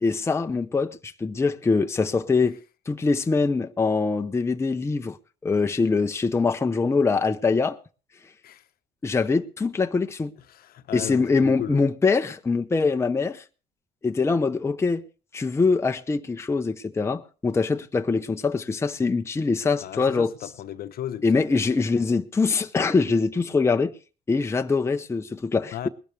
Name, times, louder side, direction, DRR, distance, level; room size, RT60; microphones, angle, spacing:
voice 1, 0.0-2.6 2.9-5.2 5.4-7.8 9.0-10.3 10.9-13.4 14.0-15.0 15.3-20.3 21.2-23.9 24.3-25.9, left 4 dB, 15° left, 0.7 m, -23 dB
voice 2, 10.4-11.8 19.8-21.4 25.7-25.9, left 11 dB, 60° left, 0.9 m, -35 dB
20.5 x 12.0 x 3.3 m
cardioid pair, 110°, 17 cm